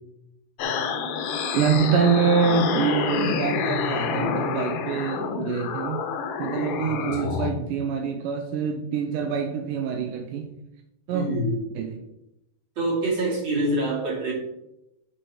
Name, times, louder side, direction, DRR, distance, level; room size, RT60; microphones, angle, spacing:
sound 1, 0.6-7.5, left 6 dB, 70° left, 1.9 m, -28 dB
voice 1, 1.5-6.1 6.4-10.5 11.1-11.3 11.8-12.0, right 6 dB, 80° right, 4 dB, 2.3 m, -25 dB
voice 2, 11.1-11.6 12.8-14.3, right 1 dB, 35° right, -4 dB, 3.3 m, -25 dB
11.0 x 4.7 x 4.5 m, 0.88 s
omnidirectional pair, 4.0 m